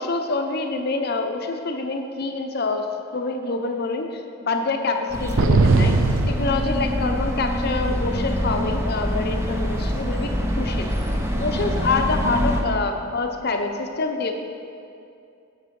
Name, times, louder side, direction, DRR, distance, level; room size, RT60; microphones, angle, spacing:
voice 1, 0.0-2.9 3.1-5.9 6.3-10.3 10.6-10.9 11.4-14.3, left 3 dB, 50° left, 5 dB, 0.7 m, -26 dB
sound 1, 5.1-12.6, equal, 15° right, 0.7 m, -25 dB
sound 2, 5.4-7.3, right 3 dB, 80° right, 0.5 m, -20 dB
8.2 x 6.7 x 5.3 m, 2.5 s
head